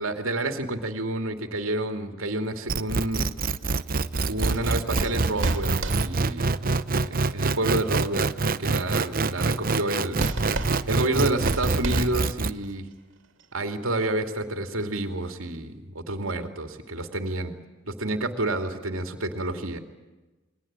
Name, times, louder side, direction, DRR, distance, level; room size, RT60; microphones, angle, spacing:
voice 1, 0.0-3.3 4.3-6.5 7.1-8.3 8.6-10.2 10.9-12.8 13.5-17.6 17.9-19.8, right 2 dB, 80° right, 5 dB, 2.7 m, -29 dB
sound 1, 2.7-12.5, right 3 dB, 45° right, 0.9 m, -26 dB
sound 2, 4.1-6.7 9.9-10.0 10.2-12.4 12.6-12.7, right 1 dB, 65° right, 3.0 m, -32 dB
29.0 x 22.5 x 8.9 m, 1.1 s
head